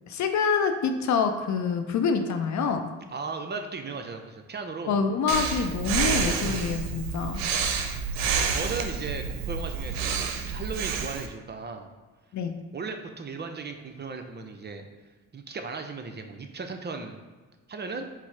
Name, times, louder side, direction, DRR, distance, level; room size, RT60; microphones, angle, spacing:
voice 1, 0.1-2.8 4.9-7.4 12.3-12.5, left 5 dB, 55° left, 7 dB, 0.6 m, -26 dB
voice 2, 3.1-5.0 8.5-11.9 12.7-14.9 15.3-17.2 17.7-18.1, right 4 dB, 30° right, 5 dB, 0.5 m, -36 dB
Breathing, 5.3-11.3, right 6 dB, 75° right, 0.6 m, -29 dB
4.4 x 2.0 x 4.4 m, 1.3 s
supercardioid pair, 60°, 34 cm